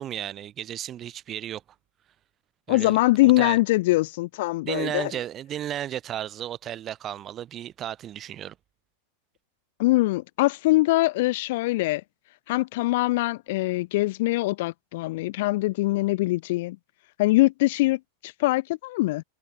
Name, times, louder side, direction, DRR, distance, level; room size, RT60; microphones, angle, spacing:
voice 1, 0.0-1.6 2.7-3.6 4.6-8.5, right 11 dB, 30° right, 1.2 m, -34 dB
voice 2, 2.7-5.1 9.8-12.0 12.5-16.8 17.2-19.2, left 19 dB, 50° left, 0.3 m, -23 dB
figure-of-eight pair, 90°, 0 cm